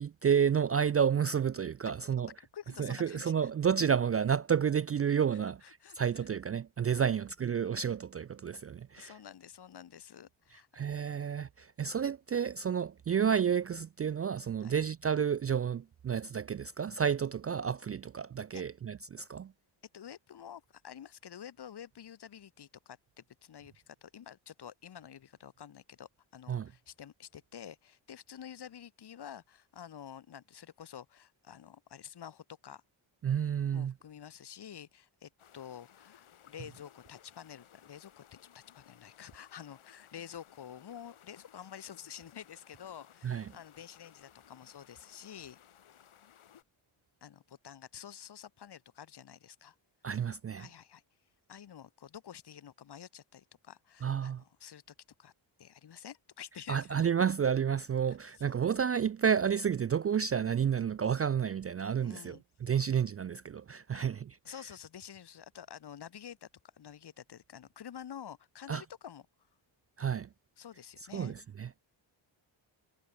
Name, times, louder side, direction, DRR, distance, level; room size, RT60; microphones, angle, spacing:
voice 1, 0.0-2.3 2.8-5.6 5.9-9.1 10.7-19.5 26.5-26.7 33.2-33.9 43.2-43.5 50.0-50.7 54.0-54.4 56.7-64.4 68.7-68.8 70.0-70.3 71.1-71.8, right 7 dB, 30° right, 0.4 m, -30 dB
voice 2, 2.1-3.5 5.3-6.3 7.0-7.2 9.0-10.7 14.6-14.8 18.5-18.6 19.9-32.8 33.7-38.2 38.5-45.6 47.2-49.7 50.6-51.0 51.5-55.3 55.6-57.1 58.1-58.2 62.0-62.4 63.9-64.1 64.4-66.5 66.7-69.3 70.6-71.3, left 9 dB, 50° left, 1.1 m, -49 dB
sound 1, 35.4-46.6, left 9 dB, 75° left, 3.2 m, -60 dB
cardioid pair, 70°, 50 cm